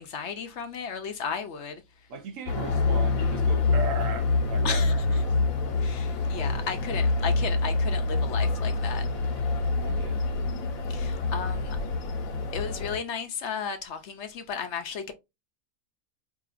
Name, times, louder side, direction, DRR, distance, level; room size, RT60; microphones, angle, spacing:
voice 1, 0.0-1.8 4.6-5.2 5.8-9.1 10.9-11.8 12.5-15.1, left 6 dB, 65° left, 0.8 m, -34 dB
voice 2, 2.1-5.3 9.9-10.2, right 2 dB, 70° right, 1.2 m, -37 dB
sound 1, 2.5-13.0, left 3 dB, 80° left, 1.3 m, -26 dB
4.9 x 2.8 x 2.4 m
omnidirectional pair, 1.4 m